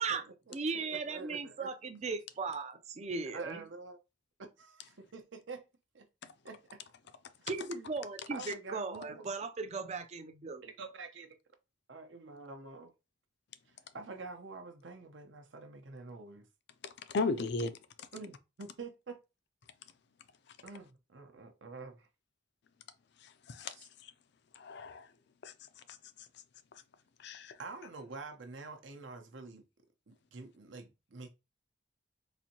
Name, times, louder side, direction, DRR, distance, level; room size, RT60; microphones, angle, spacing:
voice 1, 0.0-1.7 2.1-2.2 3.2-4.0 4.6-5.6 5.9-6.1 6.4-6.8 7.4-7.5 8.3-9.3 10.6-11.4 11.9-12.9 13.7-16.4 18.1-19.2 20.6-22.1 23.7-23.9 27.6-29.7 30.1-31.3, right 4 dB, 70° right, 0.8 m, -47 dB
voice 2, 0.5-3.6 7.5-10.6, right 4 dB, 35° right, 0.4 m, -37 dB
voice 3, 16.8-17.8 23.5-23.7 24.6-25.1 25.4-25.5 27.2-27.6, left 3 dB, 60° left, 0.4 m, -35 dB
4.1 x 2.6 x 2.8 m
head